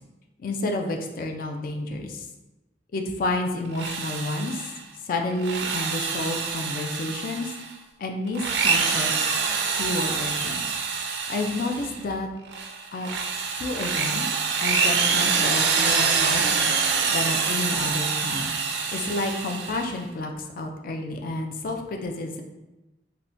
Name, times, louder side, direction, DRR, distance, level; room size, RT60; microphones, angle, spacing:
voice 1, 0.4-2.2 2.9-4.7 5.0-7.5 8.0-9.1 9.8-10.6 11.3-12.3 12.9-13.1 13.6-14.3 14.6-16.7 17.1-18.5 18.9-22.4, left 2 dB, 50° left, 3 dB, 0.3 m, -30 dB
Drill, 3.7-4.8 5.3-7.7 8.3-12.0 12.5-19.9, right 5 dB, 70° right, 0.3 m, -26 dB
3.5 x 2.2 x 2.5 m, 1.0 s
head